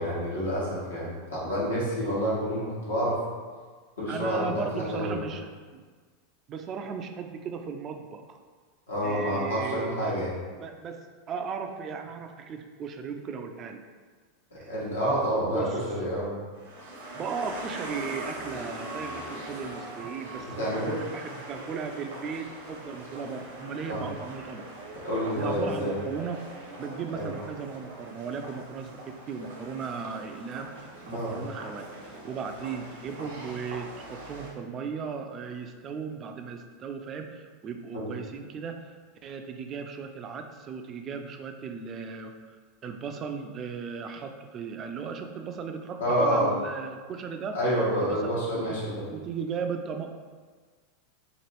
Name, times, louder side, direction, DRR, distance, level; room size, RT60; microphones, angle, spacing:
voice 1, 0.0-3.2 4.0-5.1 8.9-10.3 14.5-16.3 20.6-21.0 23.9-24.0 25.0-25.9 27.1-27.3 31.1-31.3 37.9-38.1 46.0-46.5 47.5-49.0, equal, 80° left, -7 dB, 1.1 m, -28 dB
voice 2, 4.1-5.8 6.5-8.4 9.0-10.3 10.6-11.0 11.3-13.8 14.6-14.7 15.5-15.8 17.1-24.7 25.4-26.4 26.8-38.9 39.2-42.3 42.8-47.6 48.0-48.8 49.1-50.2, right 6 dB, 35° right, 6 dB, 0.3 m, -36 dB
sound 1, 16.5-34.5, right 1 dB, 70° right, 0.7 m, -42 dB
2.9 x 2.5 x 3.0 m, 1.5 s
hypercardioid pair, 90°, 0 cm